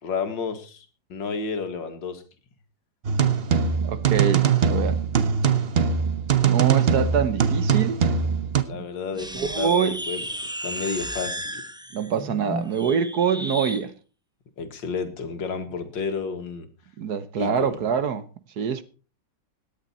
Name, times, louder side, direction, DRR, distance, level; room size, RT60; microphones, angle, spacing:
voice 1, 0.0-2.2 8.7-9.3 9.6-10.2 10.6-11.6 14.6-16.7 17.4-17.8, left 5 dB, 75° left, 2.3 m, -31 dB
sound 1, 3.0-8.6, right 7 dB, 40° right, 0.9 m, -22 dB
voice 2, 3.8-5.0 6.4-8.0 9.3-10.0 11.9-13.9 17.0-18.2 18.6-18.8, right 7 dB, 60° right, 1.4 m, -25 dB
sound 2, 9.1-13.8, equal, 5° right, 0.5 m, -33 dB
17.5 x 10.0 x 4.3 m
omnidirectional pair, 2.1 m